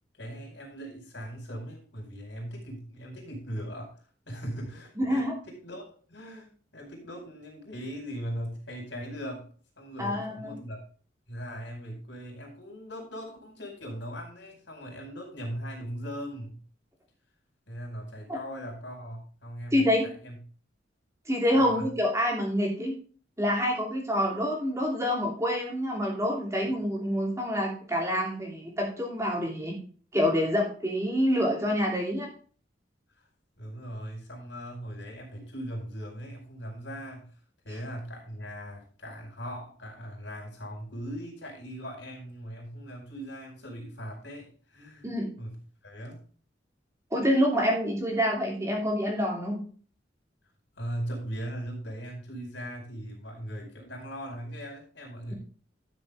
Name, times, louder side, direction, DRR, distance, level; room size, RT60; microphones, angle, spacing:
voice 1, 0.2-9.5 9.8-10.8 11.3-16.6 17.7-20.4 21.5-21.9 33.6-37.3 37.6-45.6 45.8-46.2 50.8-55.3, equal, 75° left, 1 dB, 4.8 m, -39 dB
voice 2, 5.0-5.4 10.0-10.5 18.3-18.4 19.7-20.0 21.3-23.0 23.4-29.7 30.1-32.3 45.0-45.3 47.1-49.6, equal, 15° right, -1 dB, 2.8 m, -27 dB
12.5 x 6.7 x 3.5 m, 0.42 s
head